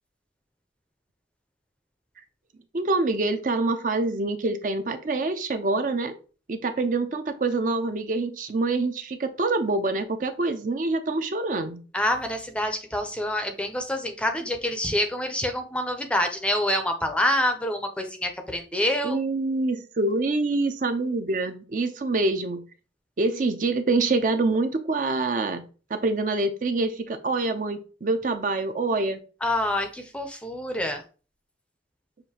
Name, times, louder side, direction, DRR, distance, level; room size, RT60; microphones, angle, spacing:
voice 1, 2.7-6.1 6.5-11.8 19.0-22.7 23.2-29.2, right 3 dB, 45° right, 8 dB, 0.5 m, -26 dB
voice 2, 11.9-19.2 29.4-31.0, left 1 dB, 5° left, 5 dB, 0.5 m, -26 dB
6.5 x 2.6 x 2.8 m, 0.36 s
head